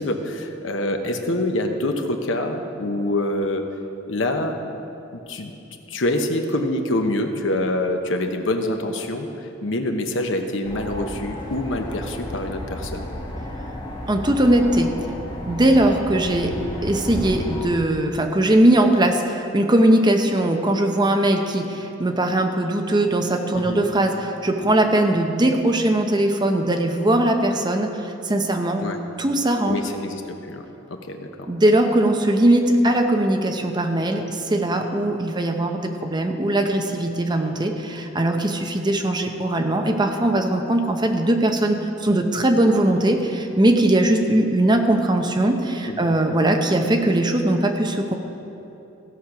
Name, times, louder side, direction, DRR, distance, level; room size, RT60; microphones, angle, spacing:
voice 1, 0.0-3.6 4.1-4.5 5.3-5.5 5.9-13.1 23.5-23.8 28.8-29.0 29.7-31.5 45.9-46.1, left 1 dB, 70° left, 5 dB, 0.9 m, -26 dB
sound 1, 10.6-17.7, left 1 dB, 25° left, 1.3 m, -33 dB
voice 2, 14.1-14.9 15.5-16.5 16.8-28.8 29.2-29.8 31.5-48.1, right 1 dB, 20° right, 4 dB, 0.7 m, -20 dB
15.5 x 6.5 x 5.8 m, 2.9 s
head